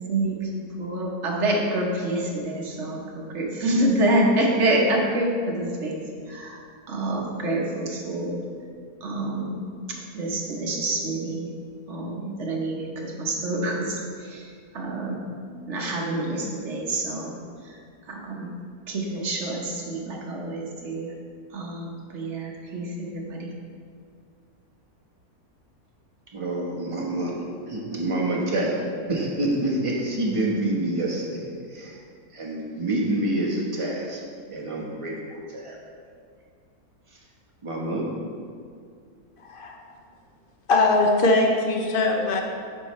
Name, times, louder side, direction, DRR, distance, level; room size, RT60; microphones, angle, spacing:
voice 1, 0.0-8.4 9.0-9.6 10.1-11.5 11.9-15.2 15.7-17.3 18.1-18.5 18.9-21.1 21.5-23.5, right 1 dB, 50° right, -1 dB, 1.3 m, -27 dB
voice 2, 26.3-27.4 27.7-28.8 29.1-31.5 31.7-32.0 32.3-34.2 34.5-35.8 37.6-38.0, right 1 dB, 25° right, -3 dB, 1.0 m, -27 dB
voice 3, 39.4-39.9 40.7-42.4, left 2 dB, 50° left, 1 dB, 0.7 m, -21 dB
9.1 x 5.6 x 3.2 m, 2.2 s
omnidirectional pair, 1.6 m